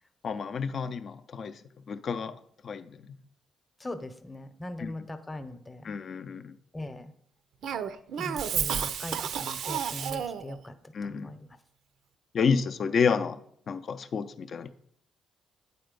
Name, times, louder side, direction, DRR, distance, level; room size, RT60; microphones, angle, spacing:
voice 1, 0.2-1.6 1.9-2.3 2.6-3.0 4.8-4.9 5.8-6.5 10.9-11.3 12.3-13.4 13.7-14.7, left 6 dB, 55° left, 10 dB, 0.5 m, -29 dB
voice 2, 3.8-5.9 6.7-7.1 8.2-10.7 11.0-11.5, left 1 dB, 20° left, 10 dB, 0.8 m, -40 dB
Cough, 7.6-10.6, right 8 dB, 70° right, 0.5 m, -31 dB
8.7 x 4.3 x 5.2 m, 0.66 s
cardioid pair, 90°, 0 cm